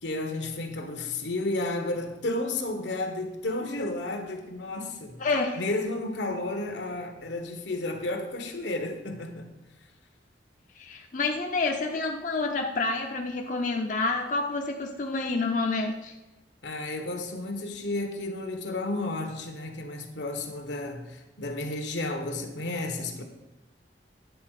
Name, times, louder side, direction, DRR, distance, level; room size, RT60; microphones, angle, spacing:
voice 1, 0.0-5.2 5.6-9.5 16.6-23.2, left 2 dB, 80° left, 1.2 m, -32 dB
voice 2, 5.2-5.6 10.8-16.1, left 3 dB, 45° left, 0.6 m, -28 dB
9.5 x 4.1 x 6.4 m
head